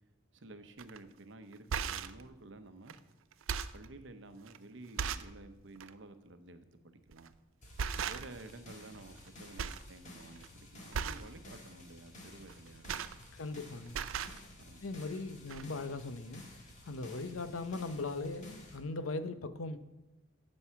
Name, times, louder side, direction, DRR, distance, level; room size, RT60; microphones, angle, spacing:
voice 1, 0.3-2.9 3.7-7.3 8.1-13.3 14.6-14.9, right 2 dB, 65° right, 9 dB, 0.8 m, -52 dB
sound 1, 0.8-1.0 1.5-2.2 2.9-3.0 3.3-3.9 4.5-4.6 5.0-5.4 5.8-5.9 7.1-7.3 7.8-8.5 8.8-9.3 9.6-9.9 10.2-10.5 10.9-11.3 12.5-13.6 13.9-14.4 15.2-15.3 15.5-15.6, right 7 dB, 85° right, 0.4 m, -37 dB
sound 2, 7.6-18.8, left 1 dB, 35° left, 1.7 m, -53 dB
voice 2, 13.3-14.0 14.8-16.4 16.8-19.8, left 3 dB, 90° left, 11 dB, 0.7 m, -39 dB
12.5 x 5.4 x 5.8 m, 0.99 s
head